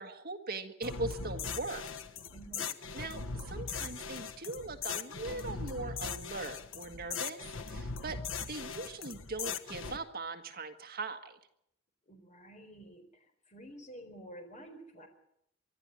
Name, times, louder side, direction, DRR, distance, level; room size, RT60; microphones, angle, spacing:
voice 1, 0.0-1.8 2.9-8.2 8.5-11.4, right 3 dB, 50° right, 8 dB, 1.7 m, -40 dB
sound 1, 0.8-10.0, left 5 dB, 90° left, 1.3 m, -40 dB
voice 2, 2.3-2.7 12.1-15.1, right 1 dB, 40° left, 6 dB, 4.3 m, -50 dB
24.5 x 12.5 x 9.9 m, 0.76 s
head